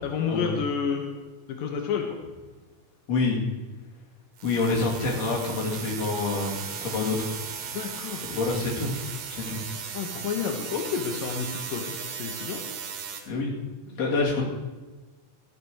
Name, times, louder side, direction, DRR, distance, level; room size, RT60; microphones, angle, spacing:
voice 1, 0.0-1.1 1.5-2.2 7.6-8.4 9.9-12.6, left 6 dB, 85° left, 3 dB, 2.7 m, -30 dB
voice 2, 3.1-3.4 4.4-7.4 8.3-8.9 9.2-9.6 13.3-13.5 13.9-14.5, left 3 dB, 55° left, -2 dB, 3.3 m, -27 dB
sound 1, 4.4-13.2, right 7 dB, 75° right, 2.8 m, -37 dB
14.0 x 6.7 x 6.3 m, 1.2 s
omnidirectional pair, 3.8 m